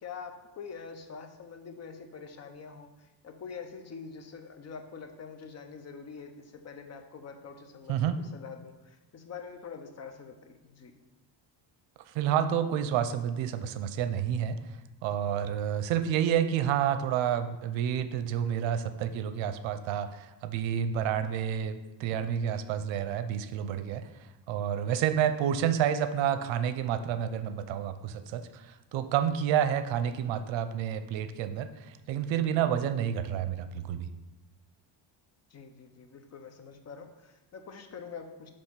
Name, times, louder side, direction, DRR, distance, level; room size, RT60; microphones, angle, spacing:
voice 1, 0.0-10.9 35.5-38.5, left 5 dB, 35° left, 6 dB, 0.6 m, -45 dB
voice 2, 12.1-14.6 15.0-24.1 24.5-34.1, right 9 dB, 80° right, 11 dB, 0.6 m, -29 dB
6.2 x 3.1 x 5.8 m, 1.0 s
cardioid pair, 130°, 45 cm